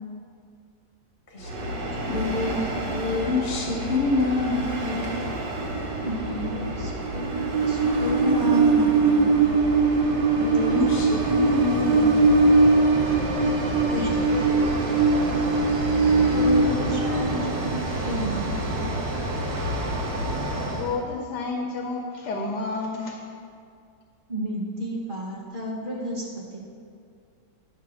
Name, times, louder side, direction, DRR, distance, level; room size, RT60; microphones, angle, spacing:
voice 1, 1.3-2.5 2.9-5.3 10.3-12.7 13.0-13.5, left 3 dB, 45° left, -3 dB, 0.7 m, -28 dB
Train, 1.4-20.9, right 3 dB, 85° right, 1.6 m, -23 dB
voice 2, 1.8-2.1 2.5-2.6 6.0-9.4 13.9-14.5 16.3-17.7 18.0-19.0 24.3-26.6, equal, 35° right, -3 dB, 1.0 m, -31 dB
voice 3, 20.6-23.2, left 3 dB, 75° left, 1 dB, 1.3 m, -30 dB
9.3 x 3.6 x 6.2 m, 2.3 s
omnidirectional pair, 1.9 m